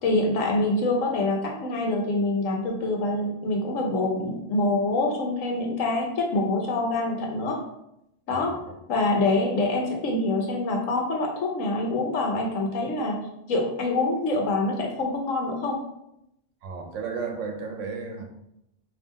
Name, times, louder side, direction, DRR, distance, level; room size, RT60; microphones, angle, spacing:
voice 1, 0.0-7.6 8.3-8.6 8.9-13.2 13.5-15.8, left 2 dB, 85° left, 1 dB, 1.2 m, -25 dB
voice 2, 8.3-8.7 16.6-18.3, right 5 dB, 75° right, 4 dB, 1.0 m, -34 dB
3.6 x 3.0 x 4.0 m, 0.81 s
omnidirectional pair, 1.3 m